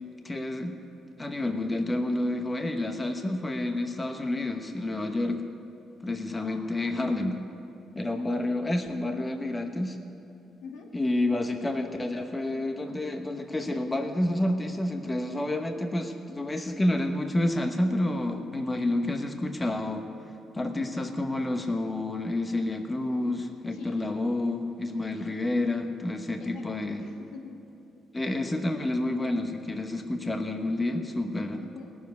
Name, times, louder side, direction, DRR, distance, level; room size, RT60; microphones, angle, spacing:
voice 1, 0.2-0.8 1.2-5.4 6.0-7.4 7.9-10.0 10.9-20.0 20.5-27.0 28.1-31.6, left 1 dB, 20° left, 5 dB, 1.1 m, -29 dB
voice 2, 6.3-7.2 8.2-8.8 10.6-10.9 18.5-18.9 23.7-24.2 25.0-25.4 26.4-27.6 31.6-32.0, left 5 dB, 85° left, 0 dB, 2.1 m, -46 dB
17.5 x 7.2 x 9.4 m, 2.7 s
cardioid pair, 90°, 0 cm